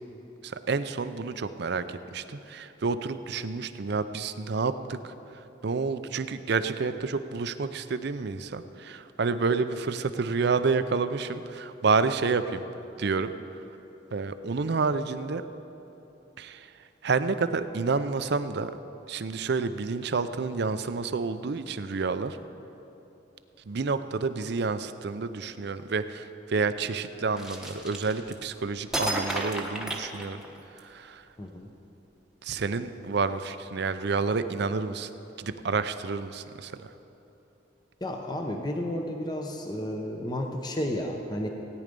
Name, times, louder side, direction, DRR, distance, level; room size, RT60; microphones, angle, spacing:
voice 1, 0.4-5.1 5.6-12.6 13.0-13.3 14.1-15.4 16.4-16.7 17.0-18.7 19.1-22.4 23.7-30.4 30.8-31.2 32.4-35.1 35.4-36.8, right 4 dB, 60° right, 11 dB, 0.5 m, -29 dB
sound 1, 27.4-28.5 28.9-30.8, right 1 dB, 5° right, 1.0 m, -32 dB
voice 2, 31.4-31.7 38.0-41.5, left 1 dB, 20° left, 3 dB, 0.8 m, -32 dB
17.0 x 9.7 x 5.2 m, 3.0 s
head